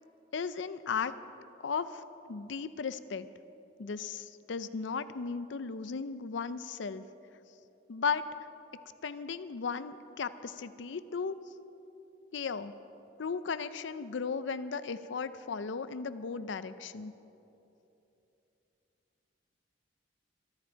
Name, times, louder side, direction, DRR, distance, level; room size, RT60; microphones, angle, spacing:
voice 1, 0.3-1.1 1.6-2.0 2.3-3.3 3.8-7.0 7.9-8.3 9.0-11.4 12.3-12.7 13.2-17.1, left 5 dB, 70° left, 13 dB, 0.5 m, -36 dB
23.0 x 13.0 x 4.5 m, 3.0 s
head